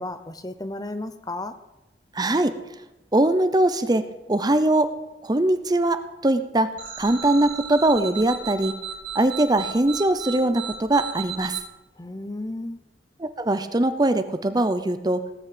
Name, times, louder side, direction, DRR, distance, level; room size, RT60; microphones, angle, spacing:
voice 1, 0.0-1.5 12.0-12.8, left 2 dB, 20° left, 11 dB, 0.7 m, -33 dB
voice 2, 2.1-2.6 3.1-4.9 5.2-8.7 9.1-11.6 13.2-15.2, right 1 dB, 20° right, 11 dB, 0.7 m, -22 dB
sound 1, 6.8-11.6, right 7 dB, 45° right, 3.7 m, -35 dB
18.0 x 6.2 x 8.6 m, 0.96 s
head